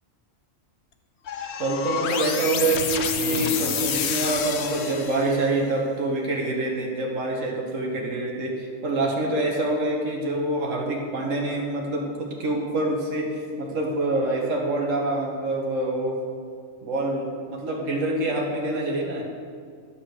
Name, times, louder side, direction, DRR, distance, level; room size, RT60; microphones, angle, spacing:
sound 1, 1.3-5.6, left 7 dB, 60° left, 0.9 m, -28 dB
voice 1, 1.6-16.2 16.8-19.2, right 2 dB, 70° right, -1 dB, 1.8 m, -26 dB
11.0 x 5.9 x 6.4 m, 2.1 s
omnidirectional pair, 1.4 m